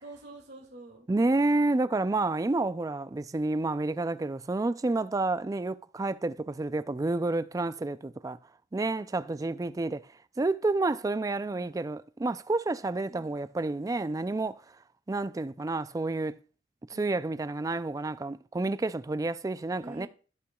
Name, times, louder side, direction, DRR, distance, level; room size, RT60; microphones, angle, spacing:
voice 1, 0.0-1.1 11.5-11.9 13.1-13.4 16.9-17.0 19.8-20.1, right 2 dB, 65° right, 2.2 m, -47 dB
voice 2, 1.1-8.4 8.7-10.1 10.4-14.6 15.1-16.4 16.9-20.1, right 2 dB, 20° right, 0.3 m, -29 dB
15.0 x 5.7 x 2.3 m
head